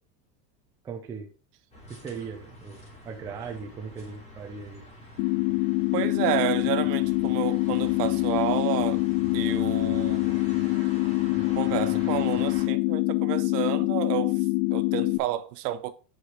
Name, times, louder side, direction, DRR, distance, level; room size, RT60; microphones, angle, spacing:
voice 1, 0.8-1.3 1.9-2.8 3.0-4.8, right 5 dB, 10° right, 0.3 m, -38 dB
sound 1, 1.7-12.7, equal, 15° left, 2.7 m, -43 dB
sound 2, 5.2-15.2, left 22 dB, 60° left, 0.6 m, -25 dB
voice 2, 5.9-9.0 9.3-10.3 11.6-14.4 14.7-15.9, right 13 dB, 75° right, 1.1 m, -30 dB
7.9 x 4.8 x 5.0 m
supercardioid pair, 160°, 48 cm